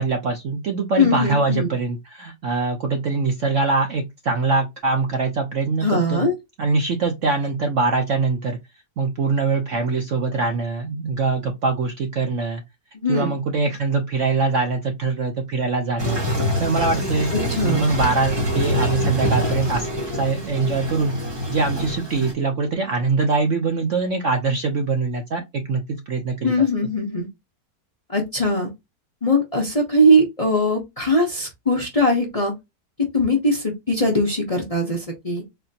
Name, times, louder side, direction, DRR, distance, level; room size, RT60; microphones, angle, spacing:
voice 1, 0.0-6.3 6.6-8.6 9.0-12.6 13.1-16.2 16.6-17.3 17.6-19.9 20.1-21.1 21.5-26.7, right 4 dB, 60° right, 0.8 m, -23 dB
voice 2, 1.0-1.7 5.8-6.3 12.9-13.3 17.5-17.9 26.4-27.3 28.1-28.7 29.2-32.5 33.0-35.4, left 1 dB, 25° left, 0.8 m, -20 dB
Toilet flush, 16.0-22.3, equal, 20° right, 1.0 m, -25 dB
4.3 x 2.8 x 2.7 m
omnidirectional pair, 1.9 m